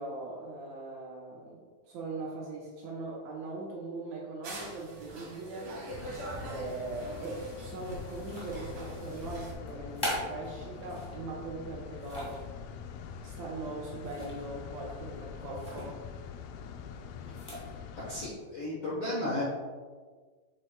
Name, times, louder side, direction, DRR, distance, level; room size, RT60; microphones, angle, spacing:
voice 1, 0.0-5.7 6.4-12.5 13.2-16.0, right 2 dB, 80° right, -3 dB, 1.6 m, -40 dB
sound 1, 4.4-9.5, right 1 dB, 50° right, 1.8 m, -43 dB
sound 2, 5.9-18.3, left 7 dB, 85° left, 2.4 m, -44 dB
sound 3, 8.1-8.8 9.6-11.2 11.7-12.5 14.0-14.5 14.8-15.0 15.5-15.9 17.2-17.7, equal, 20° left, 0.8 m, -39 dB
voice 2, 17.9-19.4, left 1 dB, 65° left, -6 dB, 1.5 m, -34 dB
7.6 x 7.5 x 2.2 m, 1.5 s
omnidirectional pair, 4.4 m